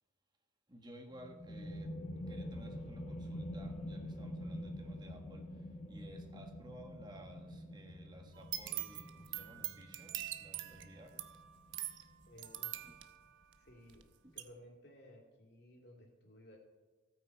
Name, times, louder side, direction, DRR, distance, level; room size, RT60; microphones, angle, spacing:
voice 1, 0.7-2.0 2.3-11.3 12.8-13.0 14.2-14.3, right 1 dB, 20° right, 3 dB, 1.4 m, -55 dB
sound 1, 1.1-12.5, left 1 dB, 35° left, 1.2 m, -46 dB
sound 2, 8.3-14.0 14.4-14.5, right 13 dB, 75° right, 0.9 m, -43 dB
voice 2, 12.3-12.7 13.6-14.0 14.3-16.6, equal, 55° left, 1 dB, 2.7 m, -57 dB
16.5 x 9.1 x 4.6 m, 1.3 s
head